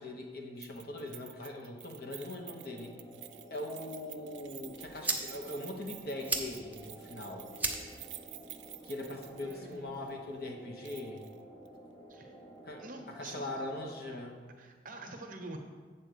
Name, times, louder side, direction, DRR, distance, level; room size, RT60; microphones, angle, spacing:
voice 1, 0.0-3.0 3.5-7.5 8.8-11.2 12.6-12.8 13.2-14.5, left 1 dB, 55° left, 2 dB, 1.1 m, -41 dB
Keys jangling, 0.6-9.8 10.1-10.2 10.8-11.4 11.7-11.8, right 16 dB, 75° right, 0.4 m, -50 dB
sound 1, 2.3-14.2, equal, 20° left, 0.8 m, -52 dB
sound 2, 4.4-10.4, right 3 dB, 10° right, 0.6 m, -40 dB
voice 2, 9.4-9.9 12.1-12.3 12.8-13.6 14.6-15.6, right 2 dB, 45° right, 4 dB, 0.9 m, -46 dB
7.6 x 4.2 x 6.8 m, 1.5 s
head